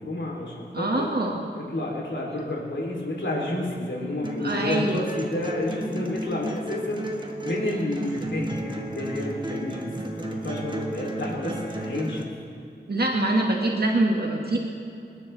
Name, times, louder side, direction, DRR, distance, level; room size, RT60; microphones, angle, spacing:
voice 1, 0.0-1.1 1.5-12.3, left 1 dB, 85° left, -3 dB, 3.1 m, -30 dB
voice 2, 0.7-1.4 4.4-5.1 12.9-14.6, right 2 dB, 60° right, -1 dB, 1.7 m, -24 dB
sound 1, 4.2-12.2, right 1 dB, 25° right, 1.5 m, -33 dB
28.5 x 10.5 x 3.3 m, 2.7 s
wide cardioid pair, 70°, 19 cm